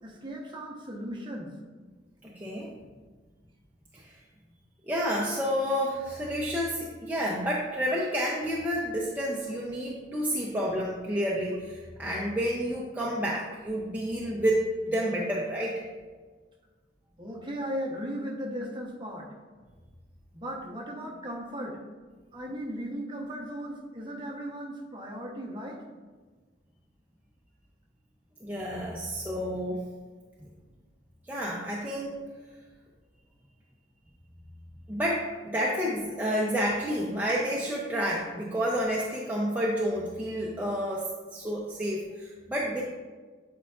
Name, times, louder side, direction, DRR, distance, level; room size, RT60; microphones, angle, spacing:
voice 1, 0.0-1.5 3.9-4.0 17.2-19.3 20.3-21.8 22.3-25.8, equal, 25° right, -1 dB, 0.9 m, -37 dB
voice 2, 2.2-2.7 3.9-4.2 4.9-15.8 28.4-29.8 31.3-32.1 34.9-42.8, equal, 10° right, -4 dB, 0.5 m, -30 dB
8.3 x 4.7 x 2.4 m, 1.4 s
head